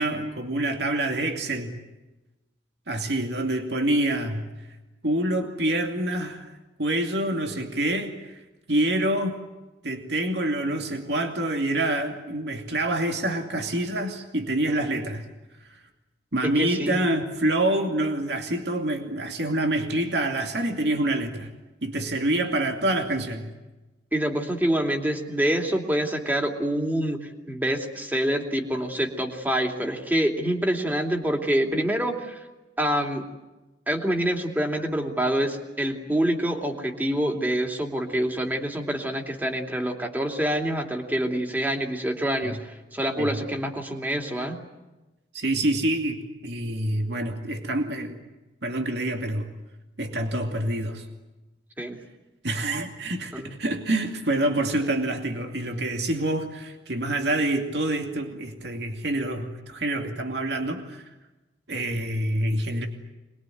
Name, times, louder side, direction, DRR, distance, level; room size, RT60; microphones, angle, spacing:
voice 1, 0.0-1.8 2.9-4.5 5.0-6.5 6.8-8.4 8.7-9.4 9.8-15.2 15.7-15.8 16.3-21.5 21.8-23.5 42.4-42.6 43.2-43.4 45.3-48.2 48.6-49.5 50.0-51.0 52.4-61.1 61.7-62.9, right 1 dB, 65° right, 4 dB, 2.6 m, -26 dB
voice 2, 16.4-17.0 24.1-32.4 32.8-33.3 33.9-44.6 51.8-52.0 53.3-53.5, right 1 dB, 10° right, 3 dB, 2.8 m, -26 dB
26.0 x 21.5 x 9.4 m, 1.1 s
head